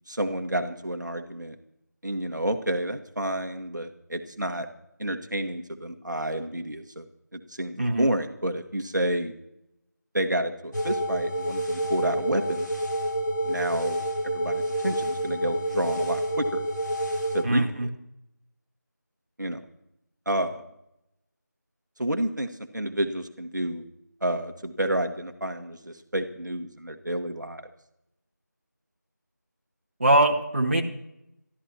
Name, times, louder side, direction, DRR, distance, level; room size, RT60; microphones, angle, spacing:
voice 1, 0.1-1.5 2.0-4.7 5.0-7.0 7.3-9.3 10.1-12.7 13.4-16.6 17.3-17.9 19.4-19.6 20.2-20.6 22.0-23.8 24.2-27.6, right 1 dB, 75° right, 5 dB, 1.6 m, -30 dB
voice 2, 7.8-8.1 17.4-17.9 30.0-30.8, right 1 dB, 40° right, 0 dB, 1.9 m, -22 dB
sound 1, 10.7-17.4, right 1 dB, 80° left, 3.2 m, -28 dB
25.5 x 13.0 x 3.0 m, 0.82 s
figure-of-eight pair, 175°, 10 cm